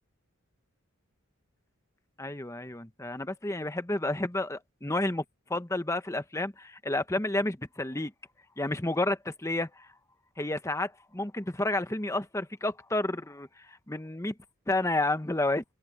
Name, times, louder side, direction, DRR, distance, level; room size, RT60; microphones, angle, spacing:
voice 1, 2.2-5.2 5.5-8.1 8.6-9.9 10.4-14.3 14.7-15.6, left 2 dB, 15° left, 1.0 m, -31 dB
head